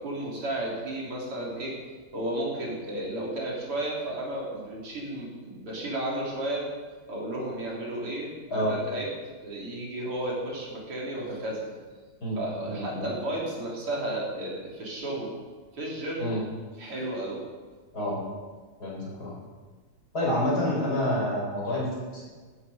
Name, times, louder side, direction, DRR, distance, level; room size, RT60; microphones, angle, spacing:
voice 1, 0.0-1.7 2.1-6.6 7.1-9.1 9.4-11.7 12.4-15.4 15.7-16.3 16.8-17.4, right 1 dB, 85° right, -4 dB, 4.3 m, -33 dB
voice 2, 12.6-13.0 16.2-16.4 17.9-18.2 18.8-19.4 20.1-22.2, left 1 dB, 45° left, -4 dB, 5.4 m, -28 dB
15.5 x 10.0 x 5.0 m, 1.4 s
omnidirectional pair, 2.4 m